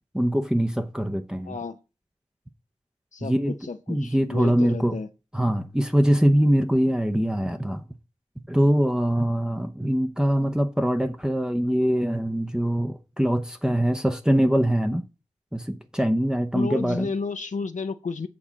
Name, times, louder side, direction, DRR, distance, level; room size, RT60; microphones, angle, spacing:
voice 1, 0.1-1.6 3.2-3.5 3.9-5.0 5.3-7.8 8.5-15.0 15.5-17.1, equal, 5° right, 0.7 m, -23 dB
voice 2, 1.4-1.8 3.1-5.1 16.5-18.3, left 4 dB, 80° left, 0.6 m, -32 dB
8.5 x 4.3 x 7.1 m
wide cardioid pair, 75°, 13 cm